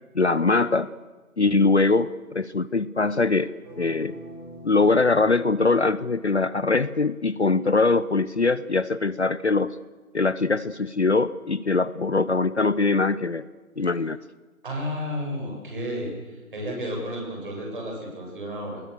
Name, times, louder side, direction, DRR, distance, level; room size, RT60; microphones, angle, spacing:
voice 1, 0.1-0.9 1.4-3.5 3.8-4.2 4.6-9.8 10.1-13.4 13.8-14.2, left 3 dB, 50° left, 17 dB, 0.7 m, -22 dB
sound 1, 3.6-6.7, left 1 dB, 20° right, 7.5 m, -44 dB
voice 2, 14.6-16.1 16.5-18.8, equal, 35° right, 0 dB, 7.7 m, -32 dB
24.5 x 21.0 x 6.9 m, 1.3 s
figure-of-eight pair, 165°, 44 cm